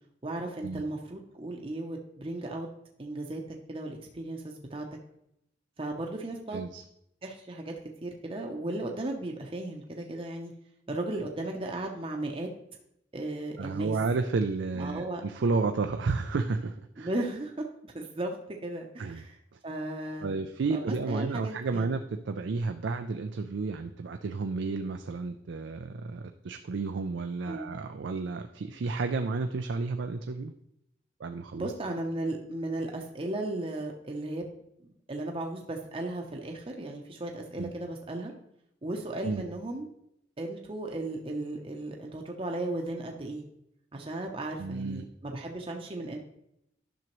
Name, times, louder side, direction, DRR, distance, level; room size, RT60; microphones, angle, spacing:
voice 1, 0.2-2.7 3.0-3.4 3.7-4.9 5.8-6.6 7.2-7.7 8.0-10.5 10.9-12.5 13.1-14.0 14.7-15.2 17.0-17.6 17.9-18.4 18.6-19.4 19.6-20.4 20.7-21.9 27.5-27.7 31.5-34.5 35.1-38.3 38.8-39.9 40.4-43.5 43.9-46.2, right 2 dB, 30° right, 1 dB, 0.7 m, -35 dB
voice 2, 6.5-6.8 13.6-17.1 19.0-19.2 20.2-30.5 31.2-31.7 37.6-37.7 39.2-39.4 44.6-45.0, right 4 dB, 85° right, 6 dB, 0.4 m, -31 dB
10.5 x 6.1 x 3.1 m, 0.77 s
head